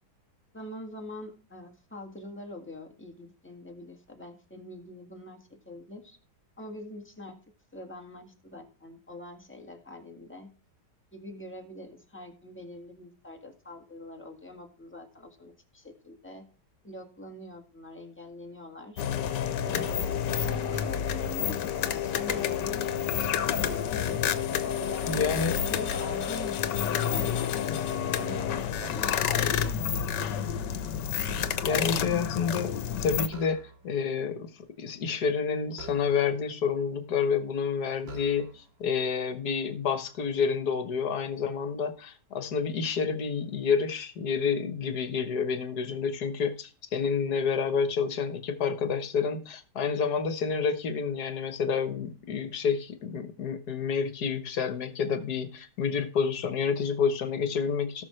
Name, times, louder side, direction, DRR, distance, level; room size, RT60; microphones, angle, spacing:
voice 1, 0.5-6.2 6.6-7.4 7.7-10.5 11.1-16.4 16.8-19.0 19.6-23.4 24.7-27.7 28.1-30.0, left 1 dB, 5° left, 2 dB, 1.8 m, -44 dB
sound 1, 19.0-33.3, left 9 dB, 80° left, 1.5 m, -29 dB
sound 2, 20.7-21.3 22.1-22.9 23.4-24.5 25.0-26.5 27.1-28.0 28.8-29.3 29.7-29.9 30.3-32.0 33.2-34.0 35.7-36.5 37.3-37.4 38.0-38.8, right 3 dB, 40° right, 1.5 m, -47 dB
voice 2, 25.1-25.6 31.6-32.7 33.0-33.6 33.8-34.5 34.8-58.0, left 6 dB, 65° left, 10 dB, 1.7 m, -29 dB
17.5 x 6.3 x 3.2 m, 0.37 s
omnidirectional pair, 1.8 m